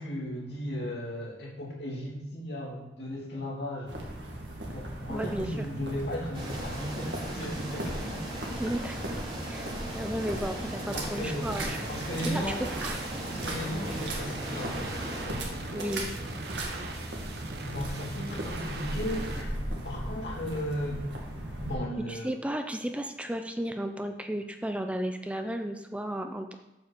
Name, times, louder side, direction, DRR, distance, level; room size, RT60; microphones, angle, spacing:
voice 1, 0.0-4.0 4.7-8.3 10.6-11.5 11.9-12.6 13.2-16.1 17.7-21.1 21.6-22.3, equal, 75° left, -4 dB, 2.7 m, -36 dB
sound 1, 3.9-21.7, right 1 dB, 90° right, 1.9 m, -37 dB
voice 2, 5.1-5.7 8.6-9.0 9.4-9.7 9.9-11.8 12.1-12.4 12.8-13.0 15.7-16.1 22.1-26.5, right 1 dB, 5° right, 6 dB, 0.4 m, -34 dB
sound 2, 6.3-15.3, right 1 dB, 35° right, 2.8 m, -38 dB
sound 3, 11.4-19.4, right 2 dB, 65° right, 1.2 m, -41 dB
7.7 x 5.6 x 6.7 m, 1.0 s
head